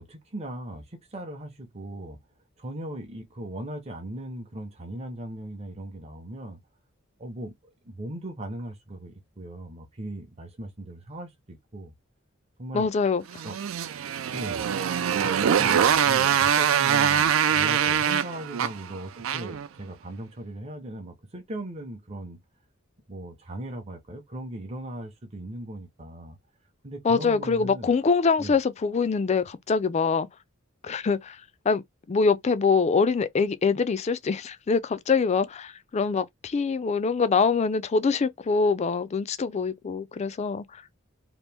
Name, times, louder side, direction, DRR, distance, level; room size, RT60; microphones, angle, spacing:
voice 1, 0.0-2.2 2.6-6.6 7.2-7.6 7.8-11.9 12.6-12.9 13.4-13.6 14.3-14.6 15.2-22.4 23.1-26.4 26.8-27.9 28.4-28.6, right 1 dB, 30° right, 0.7 m, -38 dB
voice 2, 12.7-13.2 27.0-30.3 30.8-40.8, left 5 dB, 35° left, 0.4 m, -24 dB
Motorcycle, 13.3-19.7, right 8 dB, 80° right, 0.4 m, -23 dB
2.9 x 2.5 x 3.3 m
head